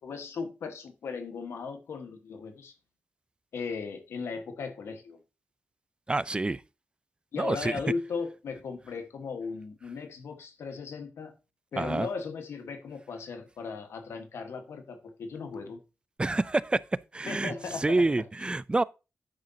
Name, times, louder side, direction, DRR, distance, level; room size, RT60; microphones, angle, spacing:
voice 1, 0.0-2.7 3.5-5.2 7.3-11.3 11.7-15.8 17.3-18.0, left 5 dB, 90° left, 1.4 m, -37 dB
voice 2, 6.1-6.6 7.4-7.8 11.8-12.1 16.2-16.8 17.1-18.8, right 2 dB, 25° right, 0.4 m, -27 dB
9.5 x 6.6 x 2.8 m
cardioid pair, 65°, 4 cm